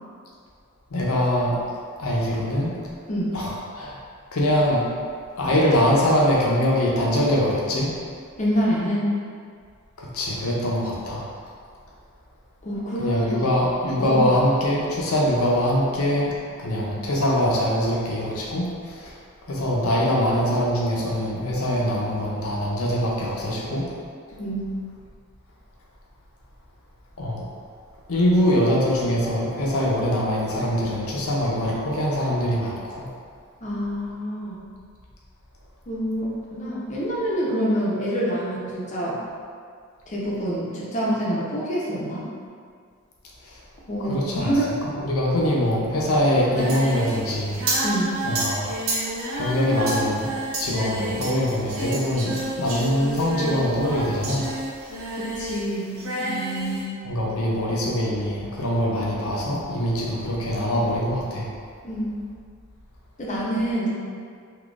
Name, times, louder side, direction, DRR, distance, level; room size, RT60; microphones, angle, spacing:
voice 1, 0.9-1.6 2.0-2.7 3.3-4.0 4.3-4.9 5.4-7.9 10.0-11.3 13.0-19.2 19.5-23.9 27.2-27.5 28.1-33.1 43.4-43.6 44.0-44.5 44.8-47.8 48.2-48.7 49.4-50.3 50.6-54.5 57.0-61.5, equal, 75° left, -4 dB, 0.6 m, -23 dB
voice 2, 3.1-3.4 8.4-9.1 12.6-13.5 14.0-14.2 24.4-24.6 33.6-34.5 35.9-39.2 40.1-42.3 43.9-44.7 47.8-48.2 55.1-57.0 61.8-62.1 63.2-63.9, equal, 35° left, -6 dB, 0.6 m, -26 dB
Singing, 46.5-55.7 55.9-56.8, right 1 dB, 60° right, 0.6 m, -29 dB
3.7 x 2.7 x 2.4 m, 2.1 s
head